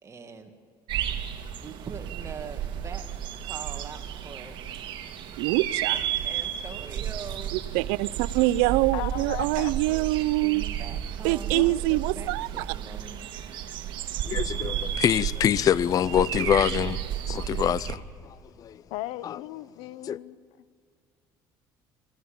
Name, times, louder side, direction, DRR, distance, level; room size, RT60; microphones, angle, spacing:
voice 1, 0.0-0.5 1.6-3.0 3.4-4.8 6.2-7.5 10.4-13.2, right 5 dB, 30° right, 2.1 m, -42 dB
sound 1, 0.9-18.0, right 10 dB, 60° right, 1.8 m, -33 dB
voice 2, 5.4-6.0 7.5-10.6 11.2-12.7, right 19 dB, 85° right, 0.5 m, -25 dB
voice 3, 8.9-9.7 11.5-11.8 18.9-20.4, left 15 dB, 80° left, 0.7 m, -36 dB
voice 4, 14.2-17.0 17.3-18.0 18.6-18.8 19.2-19.4 20.1-20.2, left 10 dB, 40° left, 0.4 m, -25 dB
22.0 x 15.0 x 8.7 m
supercardioid pair, 95°, 9 cm